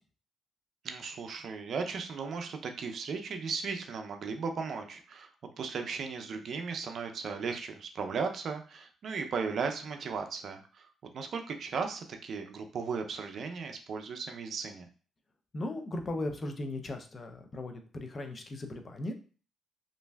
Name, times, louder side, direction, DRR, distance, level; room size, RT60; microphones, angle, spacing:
voice 1, 0.8-5.3 5.6-10.9 11.1-14.9, right 5 dB, 60° right, 5 dB, 0.4 m, -36 dB
voice 2, 15.5-19.1, left 2 dB, 35° left, 5 dB, 0.5 m, -37 dB
3.1 x 2.5 x 2.2 m, 0.38 s
cardioid pair, 90°, 0 cm